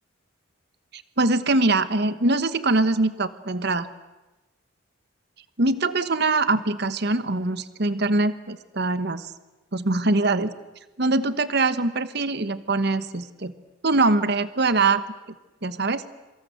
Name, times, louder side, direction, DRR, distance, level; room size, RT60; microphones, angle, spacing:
voice 1, 0.9-3.9 5.6-9.3 9.7-10.5 11.0-13.5 13.8-15.0 15.6-16.0, right 2 dB, 50° right, 13 dB, 1.1 m, -23 dB
26.5 x 24.5 x 8.0 m, 1.1 s
head